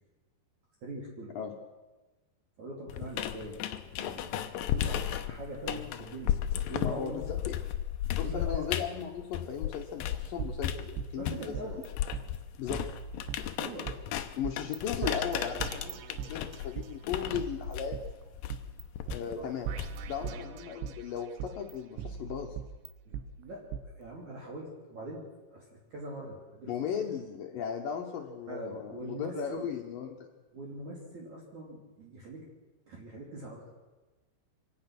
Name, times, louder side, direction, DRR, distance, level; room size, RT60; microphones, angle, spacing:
voice 1, 0.8-1.4 2.6-6.4 6.7-7.2 8.2-8.7 11.1-11.8 13.6-14.0 19.4-19.5 20.3-20.5 23.1-25.2 25.5-26.9 28.5-29.7 30.5-32.4 32.9-33.7, right 1 dB, 45° right, -2 dB, 3.8 m, -42 dB
sound 1, 2.9-10.3 10.6-20.2, left 11 dB, 85° left, 2.0 m, -35 dB
voice 2, 6.8-7.6 8.2-11.7 12.6-12.8 14.4-18.0 19.0-19.7 20.1-22.6 26.7-30.3, left 8 dB, 70° left, 3 dB, 2.3 m, -37 dB
sound 2, 10.4-11.9 12.1-12.2 12.7-14.0 14.4-14.8 15.0-16.9 17.3-18.8 19.1-19.2 19.7-21.0 21.4-23.2 23.7-23.8, right 7 dB, 80° right, 3.4 m, -39 dB
25.0 x 17.5 x 6.1 m, 1.2 s
omnidirectional pair, 5.3 m